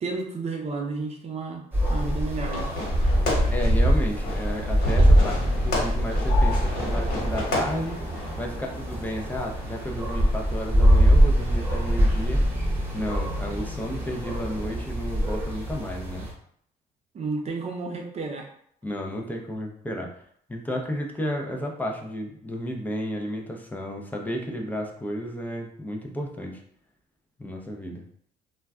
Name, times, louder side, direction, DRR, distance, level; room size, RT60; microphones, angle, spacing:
voice 1, 0.0-2.7 17.1-18.5, right 3 dB, 40° right, 1 dB, 0.6 m, -32 dB
sound 1, 1.7-16.3, equal, 10° right, 1.0 m, -23 dB
Fireworks, 2.3-8.4, left 2 dB, 75° left, 1.2 m, -32 dB
voice 2, 3.5-8.0 8.4-12.4 12.9-16.3 18.8-20.1 20.5-26.6 27.4-28.0, equal, 10° left, 1 dB, 0.5 m, -32 dB
2.3 x 2.2 x 3.5 m, 0.64 s
cardioid pair, 110°, 17 cm